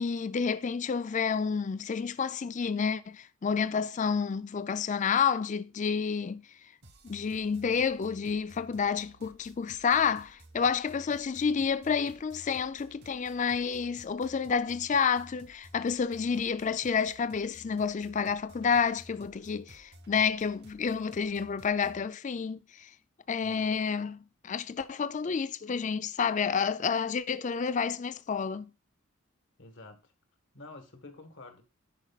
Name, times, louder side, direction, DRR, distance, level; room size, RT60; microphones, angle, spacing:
voice 1, 0.0-6.7 7.0-22.9 23.3-24.2 24.4-28.7, left 6 dB, 35° left, 0.4 m, -29 dB
sound 1, 6.8-22.1, right 1 dB, 50° right, 1.4 m, -55 dB
voice 2, 23.4-23.7 29.6-30.1 30.5-31.6, left 2 dB, 60° left, 1.6 m, -49 dB
10.5 x 5.3 x 2.3 m
head